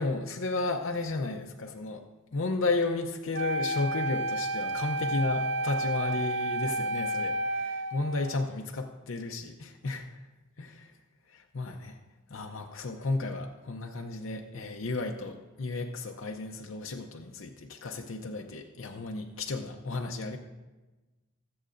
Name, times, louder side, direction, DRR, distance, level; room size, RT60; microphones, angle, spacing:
voice 1, 0.0-2.0 2.3-10.1 10.6-10.9 11.3-12.0 12.3-20.4, left 3 dB, 70° left, 2 dB, 0.6 m, -33 dB
Wind instrument woodwind instrument, 3.3-8.4, right 1 dB, 55° right, 0.4 m, -31 dB
22.0 x 7.8 x 2.6 m, 1.2 s
head